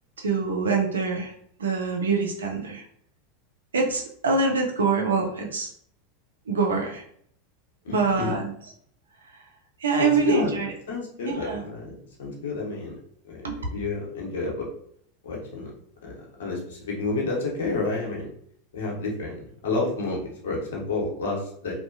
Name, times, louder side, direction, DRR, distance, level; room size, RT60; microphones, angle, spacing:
voice 1, 0.2-1.3 1.6-2.8 3.7-5.7 6.5-7.0 7.9-8.5 9.8-10.7 11.2-11.6 13.4-13.6, right 4 dB, 80° right, 2 dB, 0.5 m, -25 dB
voice 2, 7.8-8.4 10.0-10.6 10.9-12.9 13.3-13.4 13.7-14.7 15.2-15.7 16.0-18.3 18.7-19.4 19.6-21.7, left 3 dB, 70° left, -1 dB, 0.8 m, -30 dB
2.6 x 2.2 x 2.5 m, 0.65 s
hypercardioid pair, 90°, 0 cm